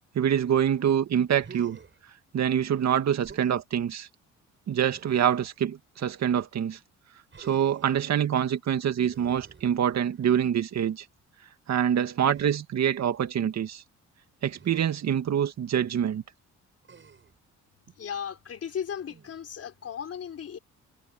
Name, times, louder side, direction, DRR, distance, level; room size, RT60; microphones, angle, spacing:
voice 1, 0.2-1.8 2.3-4.1 4.7-6.8 7.4-11.1 11.7-13.8 14.4-16.2, right 9 dB, 60° right, 2.1 m, -25 dB
Human voice, 1.4-2.0 3.2-3.6 4.9-5.6 7.3-8.0 9.1-10.3 12.3-12.6 14.6-14.9 16.8-17.4 19.0-19.5, right 6 dB, 40° right, 6.3 m, -50 dB
voice 2, 18.0-20.6, left 8 dB, 50° left, 3.7 m, -36 dB
cardioid pair, 85°, 31 cm